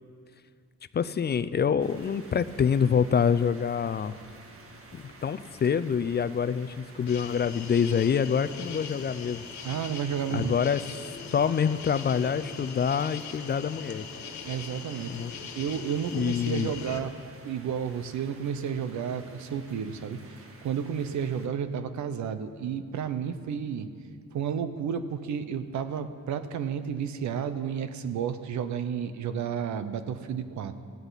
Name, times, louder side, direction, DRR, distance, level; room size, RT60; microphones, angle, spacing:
voice 1, 0.9-4.2 4.9-9.4 10.3-14.1 15.1-15.3 16.1-16.7, left 7 dB, 35° left, 14 dB, 0.5 m, -26 dB
sound 1, 1.8-21.5, right 3 dB, 45° right, 1.8 m, -51 dB
sound 2, 7.1-17.0, left 6 dB, 65° left, 1.5 m, -41 dB
voice 2, 9.6-10.5 14.5-15.1 15.5-17.1 17.4-20.2 20.6-23.9 24.3-30.7, right 7 dB, 70° right, 11 dB, 0.9 m, -31 dB
18.0 x 14.5 x 4.1 m, 2.2 s
cardioid pair, 90°, 30 cm